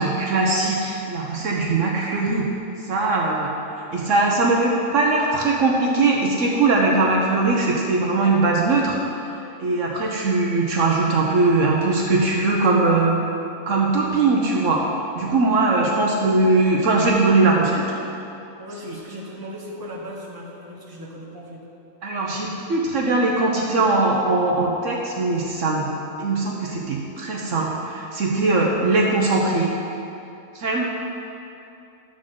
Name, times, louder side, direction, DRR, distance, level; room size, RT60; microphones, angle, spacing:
voice 1, 0.0-2.5 2.8-3.5 3.9-9.0 9.6-13.2 13.7-14.8 15.2-17.8 18.8-19.0 22.0-25.9 26.2-29.7 30.5-30.8, right 3 dB, 65° right, -1 dB, 1.2 m, -20 dB
voice 2, 18.6-21.6, equal, 15° right, -4 dB, 1.3 m, -37 dB
11.5 x 7.7 x 3.8 m, 2.8 s
omnidirectional pair, 1.5 m